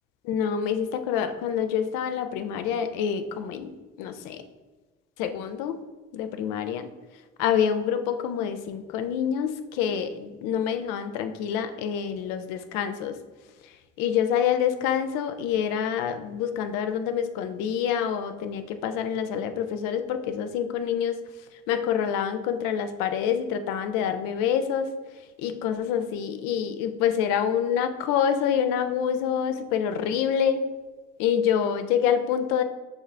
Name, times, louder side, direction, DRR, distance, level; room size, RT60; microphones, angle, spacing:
voice 1, 0.2-3.7 4.0-4.4 5.2-5.8 6.1-6.9 7.4-13.1 14.0-21.2 21.7-24.9 25.4-30.7 31.2-32.6, left 8 dB, 80° left, 9 dB, 0.5 m, -26 dB
6.4 x 2.4 x 3.2 m, 1.3 s
hypercardioid pair, 45°, 31 cm